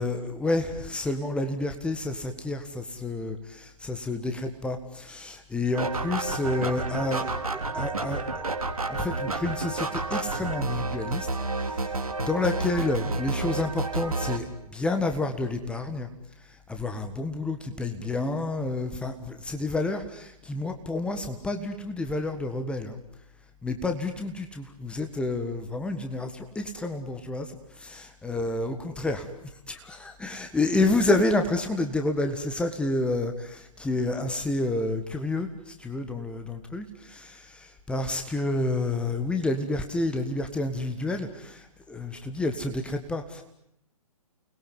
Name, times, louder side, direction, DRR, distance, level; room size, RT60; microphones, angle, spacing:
voice 1, 0.0-8.4 8.9-11.3 11.6-14.5 14.7-16.1 16.4-23.0 23.6-29.3 29.7-43.4, left 2 dB, 5° left, 6 dB, 1.6 m, -29 dB
sound 1, 5.7-14.4, right 3 dB, 70° right, 3.6 m, -30 dB
29.5 x 21.5 x 9.4 m, 0.76 s
figure-of-eight pair, 125°, 19 cm